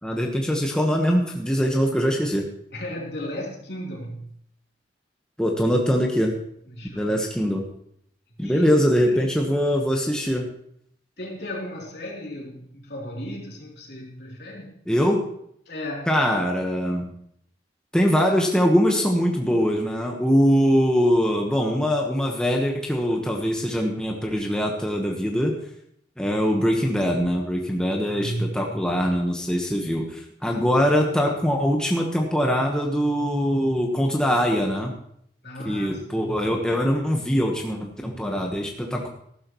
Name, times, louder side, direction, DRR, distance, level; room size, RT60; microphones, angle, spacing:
voice 1, 0.0-2.4 5.4-6.3 6.9-7.6 8.4-10.5 14.9-15.2 16.1-17.1 17.9-25.5 26.2-34.9 35.6-39.1, equal, 5° left, 0 dB, 1.2 m, -22 dB
voice 2, 2.7-4.3 6.7-7.2 8.4-8.8 9.1-9.6 11.2-14.8 15.6-16.2 28.2-28.8 30.5-30.9 35.4-36.4, equal, 65° left, -2 dB, 3.3 m, -35 dB
14.5 x 12.5 x 3.1 m, 0.69 s
head